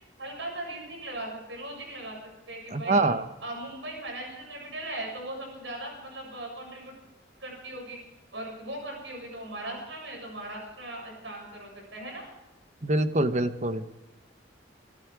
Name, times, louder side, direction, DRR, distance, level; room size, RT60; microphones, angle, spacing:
voice 1, 0.2-2.2 2.5-3.0 3.4-6.9 7.4-8.0 8.3-12.3, right 1 dB, 75° right, 0 dB, 7.4 m, -38 dB
voice 2, 2.7-3.2 12.8-13.8, right 2 dB, 40° right, 10 dB, 1.1 m, -25 dB
25.0 x 12.0 x 4.8 m, 1.0 s
head